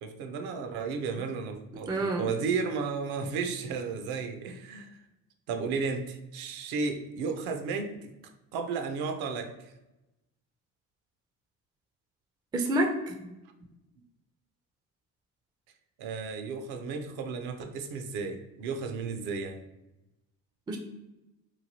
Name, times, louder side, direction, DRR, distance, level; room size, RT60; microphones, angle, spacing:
voice 1, 0.0-4.9 5.5-8.1 8.5-9.7 16.0-19.6, right 5 dB, 65° right, 6 dB, 0.6 m, -33 dB
voice 2, 1.9-2.3 12.5-13.3 20.7-20.8, right 1 dB, 10° right, 4 dB, 0.4 m, -28 dB
3.1 x 2.3 x 2.7 m, 0.95 s
hypercardioid pair, 70°, 40 cm